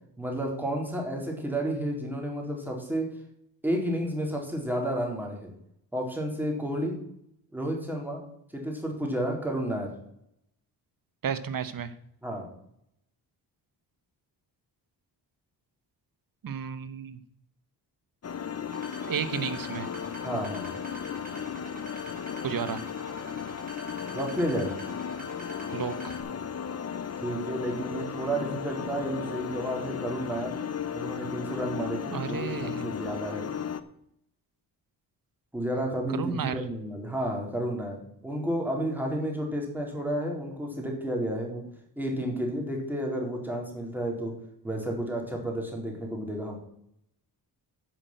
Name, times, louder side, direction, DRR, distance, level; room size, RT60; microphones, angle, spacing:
voice 1, 0.2-3.1 3.6-5.5 5.9-6.9 7.5-8.2 8.5-9.9 12.2-12.5 20.2-20.7 24.1-24.7 27.2-30.5 30.9-33.5 35.5-41.6 42.0-44.3 44.6-46.6, right 1 dB, 5° right, 0 dB, 3.8 m, -31 dB
voice 2, 11.2-11.9 16.4-17.2 19.1-19.9 22.4-22.8 25.7-26.1 32.1-32.9 36.1-36.6, right 7 dB, 55° right, 13 dB, 1.1 m, -32 dB
sound 1, 18.2-33.8, left 7 dB, 35° left, 0.8 m, -35 dB
sound 2, 18.7-26.2, right 1 dB, 20° right, 5.2 m, -45 dB
11.0 x 6.0 x 7.9 m, 0.74 s
cardioid pair, 90°, 41 cm